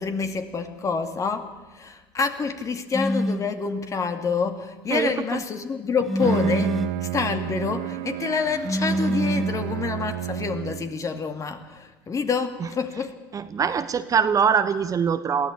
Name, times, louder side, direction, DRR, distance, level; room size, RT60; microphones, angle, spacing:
voice 1, 0.0-13.2, left 5 dB, 30° left, 7 dB, 2.4 m, -27 dB
sound 1, 2.9-3.5 6.1-7.0 8.6-9.7, equal, ahead, 1.1 m, -25 dB
voice 2, 4.9-5.4 13.3-15.5, right 6 dB, 30° right, 11 dB, 1.2 m, -23 dB
Bowed string instrument, 6.0-11.1, right 13 dB, 65° right, 1.1 m, -31 dB
22.5 x 16.0 x 8.5 m, 1.2 s
hypercardioid pair, 75°, 11 cm